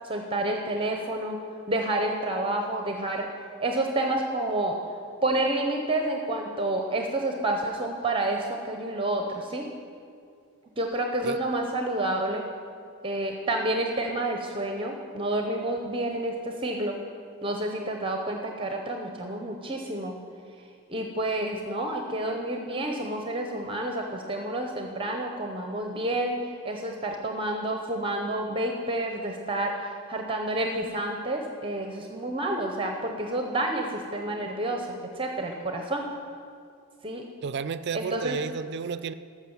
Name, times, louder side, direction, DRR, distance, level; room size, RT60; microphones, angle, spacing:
voice 1, 0.0-1.4 1.7-3.3 3.6-4.8 5.2-9.7 10.8-12.5 13.0-17.0 17.4-20.2 20.9-26.4 26.6-36.1 37.0-37.2 37.9-38.4, right 1 dB, 25° right, 3 dB, 0.8 m, -29 dB
voice 2, 37.4-39.1, right 6 dB, 50° right, 13 dB, 0.4 m, -32 dB
13.0 x 6.4 x 7.2 m, 2.3 s
head